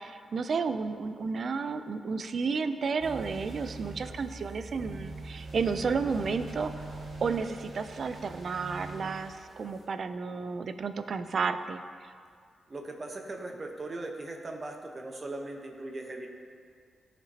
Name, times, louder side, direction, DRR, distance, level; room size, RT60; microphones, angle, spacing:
voice 1, 0.0-12.1, right 5 dB, 60° right, 10 dB, 0.4 m, -32 dB
sound 1, 3.0-9.8, right 2 dB, 85° right, 2.0 m, -43 dB
voice 2, 12.7-16.3, right 2 dB, 40° right, 2 dB, 1.1 m, -39 dB
13.5 x 5.1 x 2.9 m, 2.1 s
supercardioid pair, 50°, 0 cm